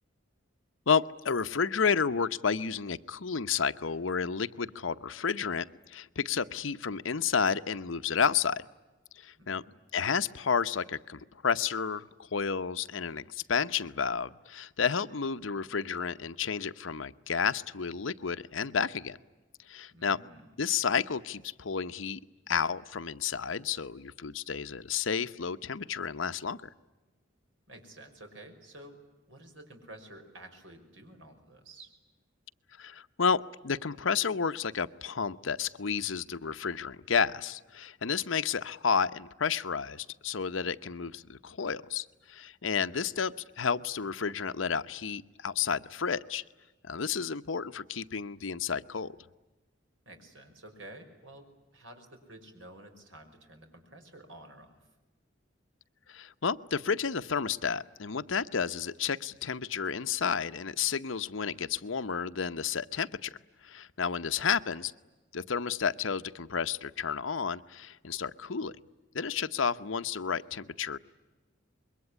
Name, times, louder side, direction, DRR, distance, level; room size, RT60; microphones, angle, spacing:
voice 1, 0.9-8.6 9.2-9.6 9.9-19.2 19.7-20.2 20.6-22.2 22.5-26.6 32.8-46.4 46.9-49.1 56.1-63.4 63.6-64.9 65.3-68.7 69.1-71.0, left 6 dB, 85° left, 12 dB, 0.8 m, -31 dB
voice 2, 19.9-20.5 27.7-29.0 29.3-31.9 42.9-43.0 50.1-54.9 64.3-64.5, right 1 dB, 75° right, 5 dB, 5.5 m, -51 dB
26.5 x 22.5 x 9.8 m, 1.2 s
head